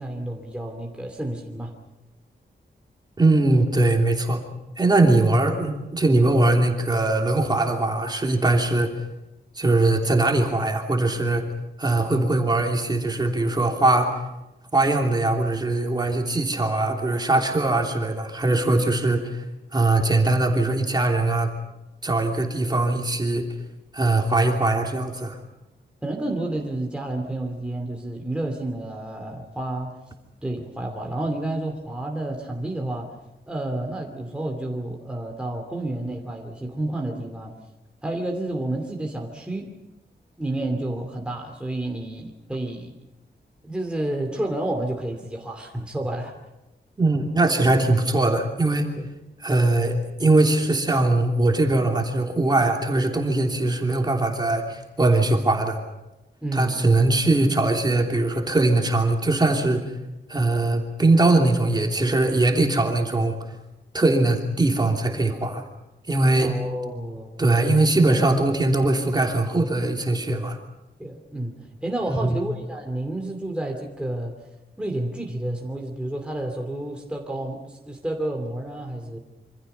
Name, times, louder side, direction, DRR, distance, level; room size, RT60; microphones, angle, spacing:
voice 1, 0.0-1.7 18.5-18.8 26.0-29.9 30.4-33.1 33.5-37.5 38.0-39.7 40.4-43.0 43.6-46.3 49.0-49.1 56.4-57.0 66.4-67.4 71.0-74.4 74.8-79.2, right 1 dB, 5° right, 1 dB, 2.6 m, -30 dB
voice 2, 3.2-4.4 4.8-8.9 9.6-11.4 11.8-14.1 14.7-19.3 19.7-21.5 22.0-23.4 23.9-25.4 47.0-48.9 49.4-55.8 56.5-59.9 60.3-63.4 63.9-65.6 66.1-66.5 67.4-70.6 72.1-72.4, right 2 dB, 25° right, 2 dB, 3.0 m, -21 dB
27.0 x 25.5 x 5.6 m, 0.99 s
wide cardioid pair, 180°, 18 cm